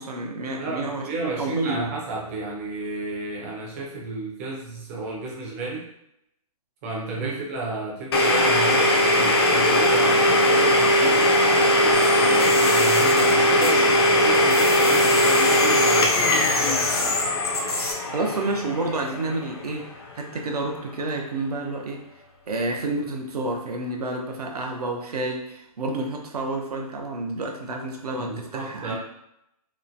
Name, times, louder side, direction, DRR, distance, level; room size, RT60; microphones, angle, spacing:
voice 1, 0.0-1.9 7.2-7.4 18.1-22.0 22.5-29.0, right 2 dB, 80° right, 1 dB, 0.7 m, -29 dB
voice 2, 0.6-5.9 6.8-16.9 28.1-29.0, right 3 dB, 20° right, -4 dB, 0.5 m, -33 dB
Domestic sounds home sounds, 8.1-19.8, left 1 dB, 40° left, 0.4 m, -19 dB
sound 1, 11.9-14.1 14.3-17.9, left 2 dB, 70° left, 0.8 m, -29 dB
3.0 x 2.1 x 2.5 m, 0.79 s
hypercardioid pair, 150°, 20 cm